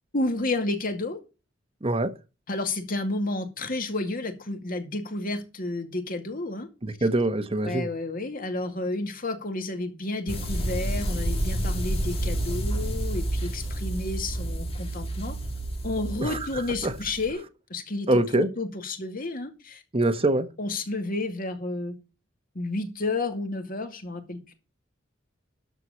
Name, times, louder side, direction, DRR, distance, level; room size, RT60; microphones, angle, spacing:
voice 1, 0.1-1.2 2.5-6.7 7.0-7.1 7.6-15.4 15.8-17.4 17.7-19.8 20.2-20.3 20.6-22.0 22.5-24.5, left 2 dB, 50° left, 2.3 m, -31 dB
voice 2, 1.8-2.1 6.8-7.9 16.2-16.4 16.8-16.9 18.1-18.5 19.9-20.5, right 2 dB, 30° right, 1.2 m, -24 dB
sound 1, 10.3-17.3, right 1 dB, 30° left, 2.0 m, -29 dB
13.0 x 4.7 x 7.1 m
head